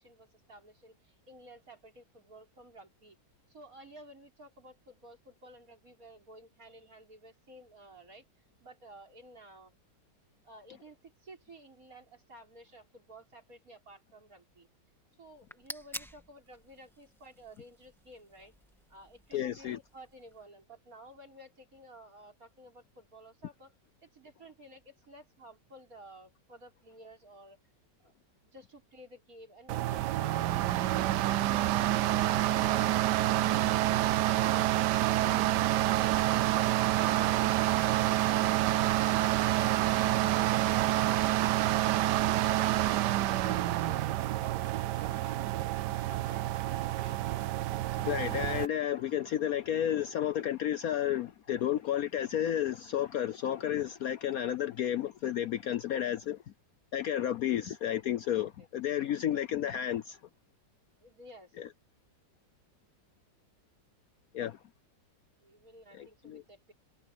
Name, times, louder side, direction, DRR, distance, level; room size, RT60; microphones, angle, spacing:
voice 1, 0.0-3.2 3.5-8.3 8.6-9.7 10.4-14.7 15.2-18.5 18.9-23.7 24.0-27.6 28.0-28.1 28.4-33.6 41.9-47.2 58.6-58.7 61.0-61.6 65.4-66.7, right 1 dB, 50° right, 5.4 m, -53 dB
sound 1, 15.2-20.4, equal, ahead, 1.8 m, -50 dB
voice 2, 19.3-19.8 48.0-56.4 56.9-60.2 61.6-61.7 64.3-64.6 65.9-66.4, left 10 dB, 65° left, 1.0 m, -32 dB
sound 2, 29.7-48.7, right 14 dB, 75° right, 1.2 m, -28 dB
sound 3, 31.1-49.6, right 2 dB, 15° right, 8.2 m, -56 dB
omnidirectional pair, 1.9 m